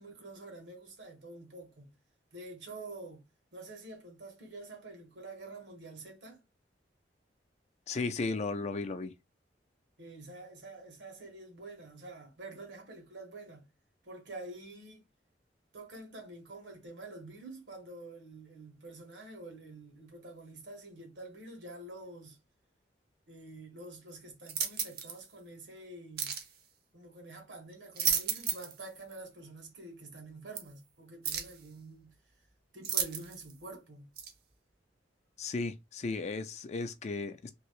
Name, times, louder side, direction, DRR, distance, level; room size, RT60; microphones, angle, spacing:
voice 1, 0.0-1.9 2.3-3.2 3.5-6.4 10.0-13.7 14.0-15.0 15.7-22.4 23.3-26.4 26.9-32.1 32.7-34.1, right 2 dB, 80° right, 1.5 m, -47 dB
voice 2, 7.9-9.1 35.4-37.5, left 3 dB, 40° left, 0.4 m, -35 dB
sound 1, 24.5-25.2 26.2-26.5 27.7-28.8 29.1-29.2 30.5-30.6 31.2-31.6 32.8-33.5 34.2-34.3, right 7 dB, 60° right, 0.7 m, -33 dB
3.0 x 2.8 x 3.0 m
head